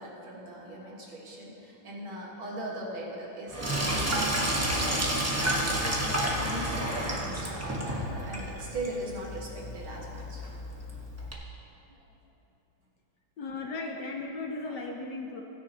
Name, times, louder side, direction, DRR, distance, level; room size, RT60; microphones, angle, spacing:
voice 1, 0.0-5.2 5.8-10.4 11.9-12.0 14.6-14.8, right 1 dB, 75° right, -4 dB, 2.5 m, -39 dB
Sink (filling or washing), 3.5-11.3, right 1 dB, 15° right, 0.5 m, -31 dB
voice 2, 13.4-15.4, left 3 dB, 65° left, 1 dB, 1.1 m, -36 dB
16.5 x 9.8 x 2.9 m, 3.0 s
omnidirectional pair, 2.3 m